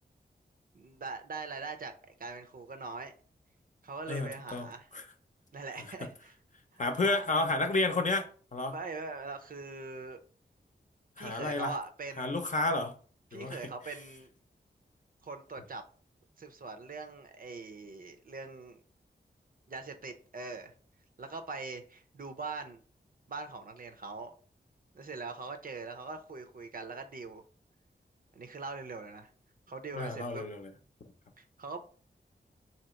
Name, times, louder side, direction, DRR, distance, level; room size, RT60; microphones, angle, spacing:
voice 1, 0.7-1.9 2.2-3.1 3.8-4.9 5.5-6.3 6.7-7.3 8.7-10.2 11.2-12.4 13.3-14.3 15.2-15.8 16.4-18.8 19.7-20.7 21.2-22.8 23.3-24.3 24.9-27.4 28.3-29.3 29.7-30.4 31.4-31.8, right 3 dB, 55° right, 0.6 m, -42 dB
voice 2, 4.1-4.7 4.9-5.0 6.8-8.3 8.5-8.7 11.2-11.7 12.2-12.9 13.3-13.6 29.9-30.7, left 2 dB, 45° left, 0.7 m, -31 dB
2.9 x 2.9 x 4.3 m
wide cardioid pair, 75°, 18 cm